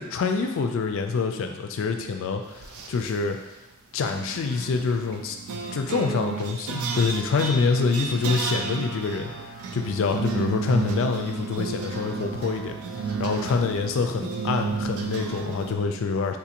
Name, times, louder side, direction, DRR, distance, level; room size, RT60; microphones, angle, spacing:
voice 1, 0.0-3.4 3.9-5.4 5.7-9.3 9.7-12.7 13.2-16.4, left 4 dB, 60° left, 5 dB, 0.3 m, -26 dB
sound 1, 2.5-3.1 4.1-15.7, right 4 dB, 80° right, 0.4 m, -32 dB
3.7 x 2.5 x 2.8 m, 1.0 s
head